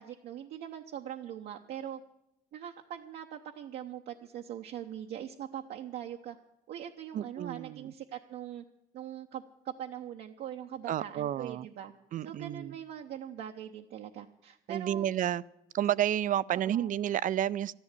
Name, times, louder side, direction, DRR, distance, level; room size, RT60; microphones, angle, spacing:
voice 1, 0.0-2.0 2.5-6.4 6.7-8.6 8.9-11.9 12.2-15.1 16.6-16.9, right 10 dB, 70° right, 0.9 m, -42 dB
voice 2, 7.1-7.9 10.9-11.7 12.1-12.7 14.7-15.4 15.7-17.7, right 11 dB, 50° right, 0.5 m, -31 dB
13.0 x 11.0 x 8.3 m
cardioid pair, 110°, 17 cm